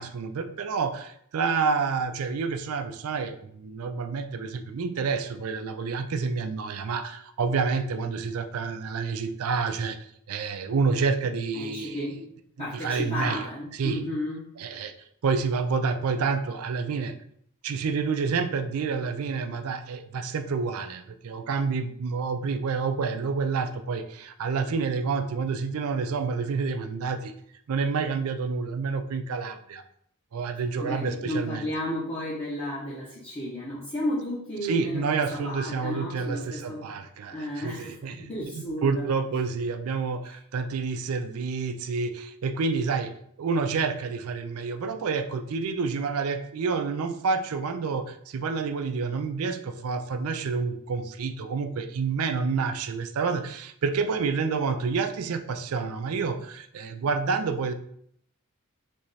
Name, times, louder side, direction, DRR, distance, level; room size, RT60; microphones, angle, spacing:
voice 1, 0.0-10.0 10.3-12.3 12.6-13.4 13.8-14.0 14.6-14.9 15.2-17.1 17.6-27.3 27.7-29.8 30.3-31.6 34.6-38.3 38.6-43.1 43.4-57.7, right 5 dB, 80° right, 8 dB, 0.4 m, -28 dB
voice 2, 11.5-12.2 12.6-14.5 30.8-35.0 35.3-36.9 37.3-38.0 38.3-39.0, left 1 dB, 25° left, -8 dB, 0.9 m, -33 dB
3.4 x 3.1 x 4.0 m, 0.67 s
head